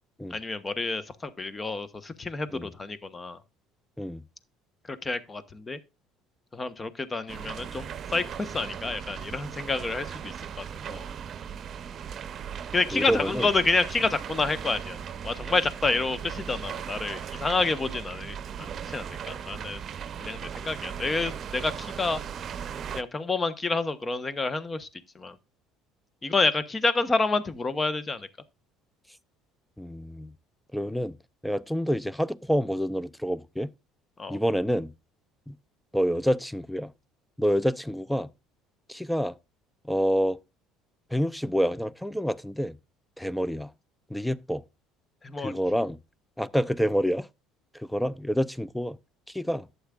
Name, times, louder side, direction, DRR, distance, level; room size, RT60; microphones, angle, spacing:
voice 1, 0.3-3.4 4.9-5.8 6.5-11.1 12.7-19.8 20.2-22.2 22.9-24.9 25.1-25.3 26.2-28.3 34.2-34.4 45.2-45.5, left 3 dB, 25° left, 1.1 m, -29 dB
sound 1, 7.3-23.0, right 8 dB, 45° right, 0.8 m, -38 dB
voice 2, 12.9-13.5 29.8-30.3 30.7-31.1 31.4-33.7 34.3-34.9 35.5-35.6 35.9-36.9 37.4-38.3 38.9-39.3 39.8-40.4 41.1-42.8 43.2-43.7 44.1-44.6 45.4-46.0 46.4-47.3 47.8-49.0 49.3-49.7, equal, 5° left, 0.6 m, -27 dB
11.5 x 8.1 x 2.4 m
hypercardioid pair, 70°, 0 cm